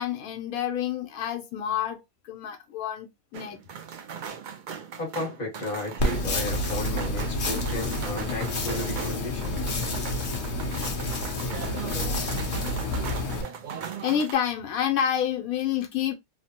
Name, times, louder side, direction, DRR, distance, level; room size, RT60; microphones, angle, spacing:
voice 1, 0.0-2.0 2.3-3.6 9.6-9.7 10.0-10.1 11.3-11.5 12.0-12.6 14.0-16.1, left 9 dB, 85° left, 1.1 m, -29 dB
sound 1, 3.3-14.3, right 7 dB, 80° right, 0.4 m, -39 dB
voice 2, 5.0-9.6, left 2 dB, 30° left, 1.4 m, -34 dB
sound 2, 6.0-13.4, left 2 dB, 50° left, 0.7 m, -29 dB
3.1 x 2.0 x 2.8 m
omnidirectional pair, 1.5 m